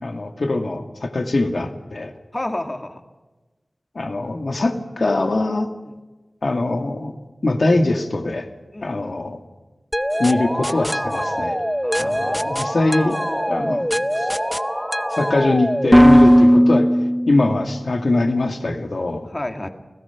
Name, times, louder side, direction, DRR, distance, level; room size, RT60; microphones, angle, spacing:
voice 1, 0.0-2.1 4.0-5.7 6.4-7.1 7.4-8.5 8.8-9.4 10.2-11.5 12.0-13.2 13.5-13.9 15.1-16.9 17.3-19.3, left 2 dB, 70° left, 6 dB, 2.0 m, -22 dB
voice 2, 2.3-3.0 5.8-6.0 8.7-9.1 11.8-12.4 17.4-17.6 19.3-19.7, left 1 dB, 35° left, 6 dB, 2.0 m, -30 dB
sound 1, 9.9-17.7, equal, ahead, 0.6 m, -19 dB
29.5 x 17.0 x 5.9 m, 1.2 s
wide cardioid pair, 55°, 0 cm